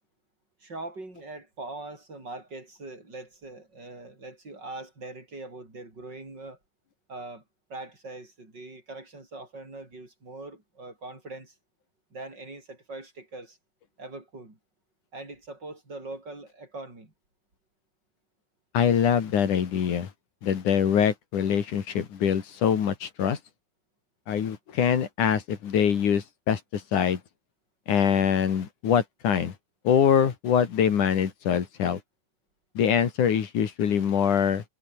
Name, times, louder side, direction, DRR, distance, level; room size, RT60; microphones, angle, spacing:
voice 1, 0.6-6.6 7.1-7.4 7.7-11.6 12.1-13.6 14.0-14.6 15.1-17.1, right 2 dB, 30° right, 7.7 m, -42 dB
voice 2, 18.7-20.1 20.4-23.4 24.3-27.2 27.9-29.5 29.9-32.0 32.8-34.6, left 8 dB, 75° left, 3.8 m, -24 dB
omnidirectional pair, 3.6 m